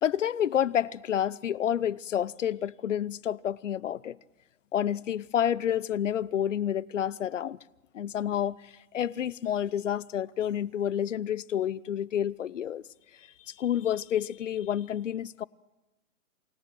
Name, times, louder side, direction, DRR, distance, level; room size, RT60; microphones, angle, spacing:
voice 1, 0.0-4.2 4.7-7.6 7.9-12.8 13.5-15.4, left 10 dB, 60° left, 0.7 m, -29 dB
28.5 x 17.0 x 6.2 m
hypercardioid pair, 170°, 42 cm